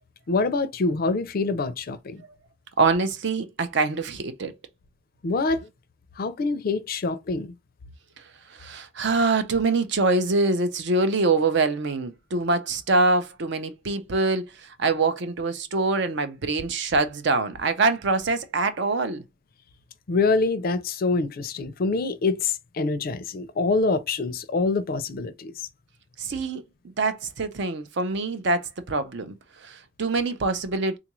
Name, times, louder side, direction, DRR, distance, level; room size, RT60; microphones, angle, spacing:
voice 1, 0.3-2.2 5.2-5.7 6.2-7.5 20.1-25.5, left 3 dB, 50° left, 0.4 m, -25 dB
voice 2, 2.8-4.5 8.5-19.2 26.2-29.3 29.6-31.0, right 3 dB, 60° right, 0.6 m, -24 dB
3.6 x 2.4 x 3.0 m
head